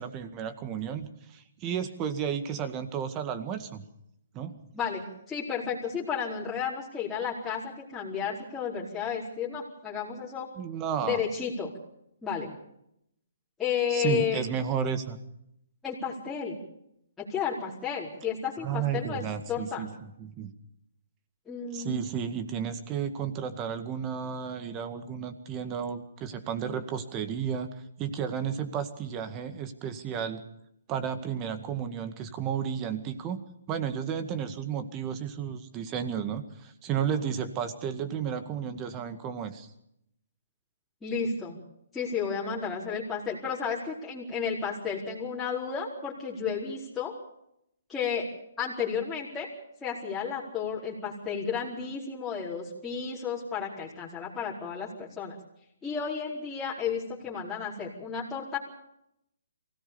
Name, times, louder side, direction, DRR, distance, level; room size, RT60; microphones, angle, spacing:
voice 1, 0.0-3.8 4.3-4.6 10.6-11.2 13.9-15.2 18.6-19.9 20.2-20.5 21.7-27.7 28.0-30.4 30.9-33.4 33.7-39.7, right 8 dB, 25° right, 10 dB, 2.0 m, -32 dB
voice 2, 4.7-10.5 11.0-11.7 12.2-12.5 13.6-14.4 15.8-16.6 17.2-19.9 21.4-22.1 41.0-41.6 41.9-47.1 47.9-48.3 48.6-49.5 49.8-55.4 55.8-58.6, left 6 dB, 10° left, -8 dB, 4.5 m, -32 dB
23.5 x 17.0 x 7.0 m, 0.78 s
hypercardioid pair, 145°, 0 cm